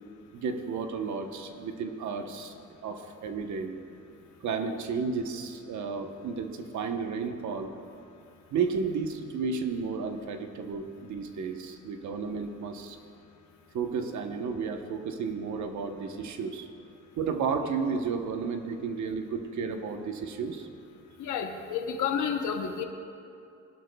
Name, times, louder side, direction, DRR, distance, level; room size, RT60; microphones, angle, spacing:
voice 1, 0.3-2.5 2.8-3.8 4.4-7.7 8.5-13.0 13.7-16.7 17.2-20.7, right 5 dB, 70° right, 5 dB, 1.0 m, -32 dB
voice 2, 21.2-22.8, left 7 dB, 75° left, 5 dB, 0.9 m, -30 dB
19.0 x 11.5 x 2.3 m, 2.6 s
cardioid pair, 90°, 30 cm